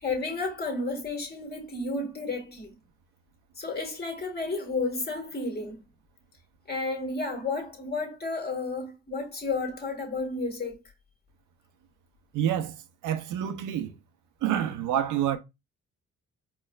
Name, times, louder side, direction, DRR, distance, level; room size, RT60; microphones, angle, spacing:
voice 1, 0.0-2.7 3.6-5.8 6.7-10.8, left 3 dB, 30° left, 1.6 m, -32 dB
voice 2, 12.3-12.8 13.0-13.9 14.4-15.4, right 10 dB, 85° right, 0.6 m, -27 dB
4.5 x 2.9 x 2.3 m
cardioid pair, 90°, 30 cm